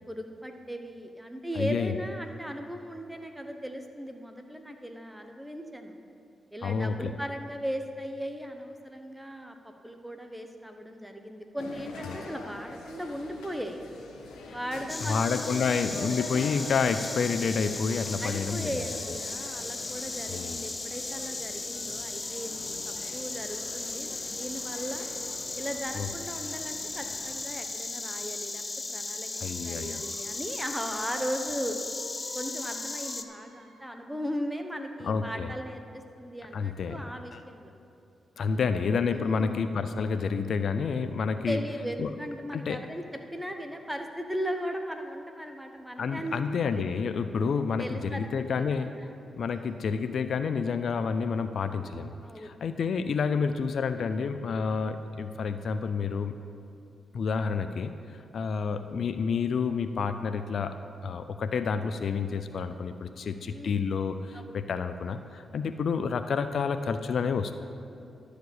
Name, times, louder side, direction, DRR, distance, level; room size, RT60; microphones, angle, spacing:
voice 1, 0.1-5.9 6.5-13.8 14.5-16.5 18.2-25.1 25.6-28.6 28.9-31.8 32.3-37.7 39.1-39.6 41.5-43.0 43.3-46.3 46.7-46.8 47.8-49.1 49.5-49.8 52.2-52.6 63.4-63.8 64.3-64.6, equal, 5° right, 5 dB, 1.1 m, -37 dB
voice 2, 1.6-2.0 6.6-7.1 12.1-12.3 14.5-14.6 15.0-18.9 20.3-20.7 25.9-26.1 29.4-30.0 35.0-35.5 36.5-37.4 38.4-41.6 42.0-42.1 42.5-42.8 46.0-48.9 49.4-56.4 57.1-67.5, left 5 dB, 70° left, 10 dB, 0.4 m, -29 dB
sound 1, 11.6-27.4, left 3 dB, 90° left, 1.3 m, -45 dB
Insect, 14.9-33.2, left 3 dB, 30° left, 0.7 m, -36 dB
Squeak, 29.3-31.3 31.8-33.9, right 4 dB, 85° right, 1.0 m, -54 dB
11.5 x 5.0 x 8.0 m, 2.6 s
cardioid pair, 55°, 0 cm